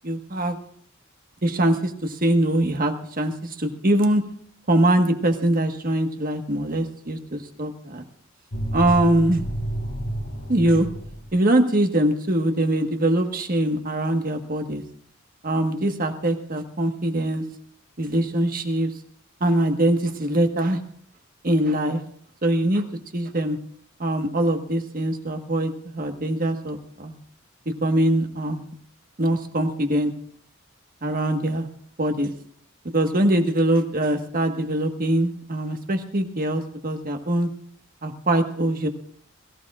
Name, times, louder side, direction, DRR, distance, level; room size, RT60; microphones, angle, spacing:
voice 1, 0.0-0.6 1.4-4.2 4.7-8.0 8.7-9.4 10.5-10.9 11.3-14.8 15.4-17.4 18.0-18.9 19.4-20.8 21.4-22.0 22.4-22.8 23.1-23.6 24.0-27.2 27.8-28.7 29.2-30.1 31.0-31.7 32.0-32.3 32.9-37.5 38.0-38.9, right 1 dB, 45° right, 5 dB, 1.5 m, -22 dB
sound 1, 8.5-11.3, right 1 dB, 70° left, 2.0 m, -30 dB
22.0 x 14.5 x 2.5 m, 0.63 s
head